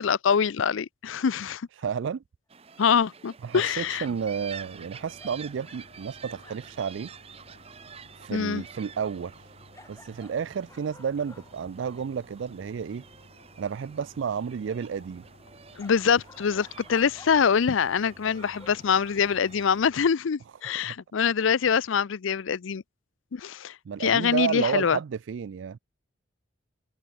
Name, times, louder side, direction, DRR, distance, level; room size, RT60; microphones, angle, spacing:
voice 1, 0.0-1.6 2.8-4.0 8.3-8.6 15.8-22.8 23.3-23.7 24.0-25.0, left 6 dB, 75° left, 0.5 m, -24 dB
voice 2, 1.7-2.2 3.4-7.1 8.1-9.6 9.9-13.0 13.6-15.2 20.8-20.9 23.9-25.8, right 7 dB, 65° right, 0.3 m, -31 dB
sound 1, 2.5-19.8, right 6 dB, 30° right, 0.8 m, -49 dB
sound 2, 3.5-4.3 5.0-5.9 6.4-6.9 9.7-12.1 15.8-17.5 17.8-18.1 18.3-19.2 20.6-20.7, left 2 dB, 15° left, 3.6 m, -53 dB
sound 3, 3.6-20.1, left 1 dB, 55° left, 4.0 m, -55 dB
head